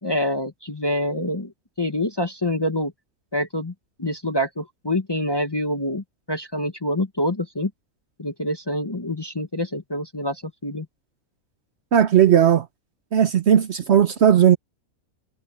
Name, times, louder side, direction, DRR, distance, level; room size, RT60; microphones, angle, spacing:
voice 1, 0.0-1.5 1.8-2.9 3.3-3.7 4.0-7.7 8.2-10.9, left 1 dB, 20° left, 0.9 m, -26 dB
voice 2, 11.9-12.7 13.1-14.6, right 9 dB, 55° right, 0.9 m, -16 dB
omnidirectional pair, 1.5 m